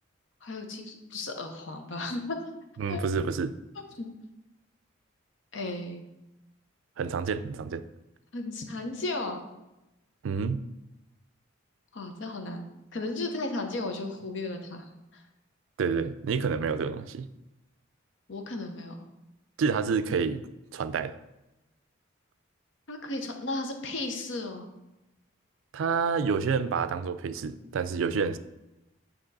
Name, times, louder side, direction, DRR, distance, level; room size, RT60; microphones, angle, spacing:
voice 1, 0.4-2.4 2.9-3.0 4.0-4.1 5.5-6.1 8.3-9.4 11.9-12.7 12.9-14.9 15.1-15.2 18.3-18.9 22.9-24.7, left 2 dB, 75° left, 4 dB, 0.8 m, -34 dB
voice 2, 2.8-3.6 7.0-7.8 10.2-10.7 15.8-17.3 19.6-20.4 20.7-21.1 25.7-28.4, right 5 dB, 85° right, 13 dB, 0.3 m, -28 dB
8.7 x 2.9 x 4.0 m, 0.96 s
head